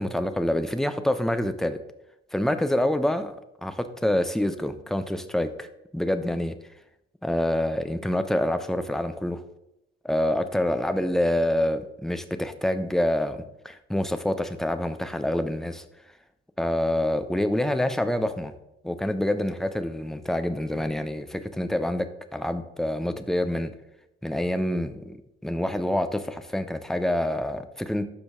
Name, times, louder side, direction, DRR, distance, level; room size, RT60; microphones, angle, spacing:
voice 1, 0.0-1.8 2.3-3.3 3.6-5.7 5.9-6.5 7.2-9.4 10.0-15.8 16.6-18.5 18.8-23.7 24.2-25.2 25.4-28.1, left 1 dB, ahead, 9 dB, 0.8 m, -26 dB
12.5 x 5.0 x 3.7 m, 0.86 s
hypercardioid pair, 50°, 30 cm